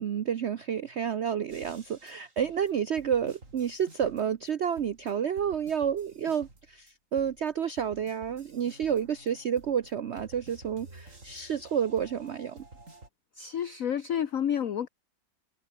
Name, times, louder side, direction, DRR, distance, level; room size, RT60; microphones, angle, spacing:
voice 1, 0.0-12.6, right 8 dB, 70° right, 0.6 m, -30 dB
sound 1, 1.5-4.5 4.8-6.9 7.2-13.1, right 2 dB, 40° right, 5.2 m, -52 dB
voice 2, 13.4-14.9, left 9 dB, 50° left, 1.2 m, -30 dB
omnidirectional pair, 2.1 m